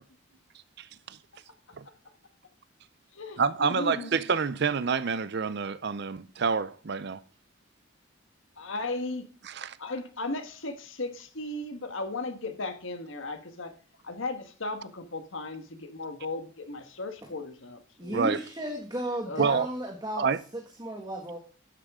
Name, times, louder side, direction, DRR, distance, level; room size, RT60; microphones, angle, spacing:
voice 1, 0.8-1.2 1.8-1.9 3.4-7.2 9.5-9.8 18.1-18.4 19.4-19.7 20.2-20.4, right 5 dB, 50° right, 0.5 m, -28 dB
voice 2, 3.1-4.1 8.6-9.3 9.8-13.7 14.0-18.2 19.2-19.6, left 2 dB, 70° left, 1.6 m, -36 dB
voice 3, 18.0-20.3 20.5-21.4, right 1 dB, 20° right, 1.5 m, -34 dB
11.5 x 8.1 x 3.7 m
head